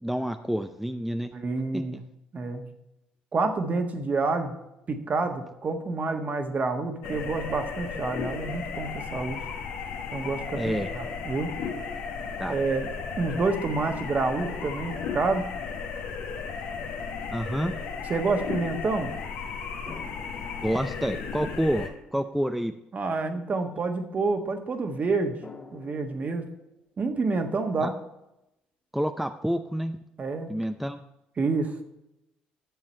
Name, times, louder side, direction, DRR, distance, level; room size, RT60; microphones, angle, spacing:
voice 1, 0.0-1.3 1.7-2.0 10.6-10.9 12.4-12.6 17.3-17.7 20.6-22.7 27.8-27.9 28.9-30.0 30.5-31.0, equal, ahead, 7 dB, 0.5 m, -28 dB
voice 2, 1.3-1.9 2.3-2.6 3.3-4.5 4.9-9.4 10.1-11.5 12.5-12.9 13.2-15.5 18.1-19.1 22.9-25.4 25.7-26.5 27.0-27.9 30.2-30.5 31.4-31.7, right 3 dB, 40° right, 5 dB, 1.4 m, -28 dB
sound 1, 7.0-21.9, left 5 dB, 75° left, 1.3 m, -35 dB
sound 2, 14.4-16.1 17.1-17.2 19.9-21.6 25.4-26.7, left 3 dB, 35° left, 2.0 m, -47 dB
10.5 x 7.3 x 4.4 m, 0.88 s
hypercardioid pair, 60°, 4 cm